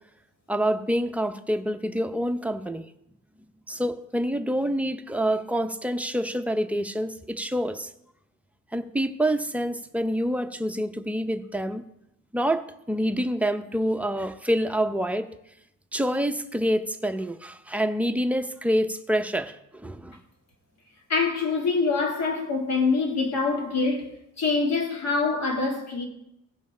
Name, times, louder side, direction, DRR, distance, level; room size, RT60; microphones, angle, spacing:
voice 1, 0.5-2.8 3.7-7.9 8.7-11.8 12.3-15.3 15.9-20.2, equal, 5° right, 0.7 m, -27 dB
voice 2, 21.1-26.1, left 4 dB, 60° left, 2.5 m, -25 dB
15.5 x 5.5 x 4.3 m
cardioid pair, 90°, 30 cm